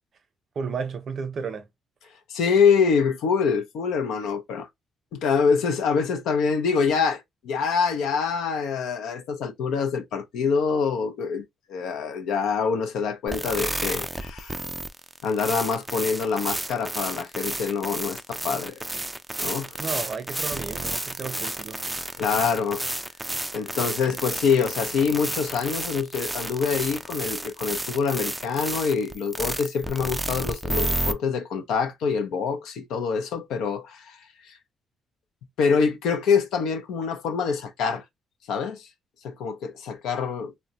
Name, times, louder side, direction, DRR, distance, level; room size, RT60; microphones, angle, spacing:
voice 1, 0.6-1.7 19.8-21.8, right 5 dB, 55° right, 0.6 m, -32 dB
voice 2, 2.3-4.7 5.1-11.4 11.7-14.6 15.2-18.8 19.4-19.8 22.2-22.8 23.5-34.2 35.6-38.0 38.5-38.9 39.2-40.5, left 5 dB, 85° left, 0.5 m, -25 dB
sound 1, 13.3-31.1, right 1 dB, 10° right, 0.3 m, -31 dB
2.6 x 2.1 x 2.8 m
cardioid pair, 90°, 0 cm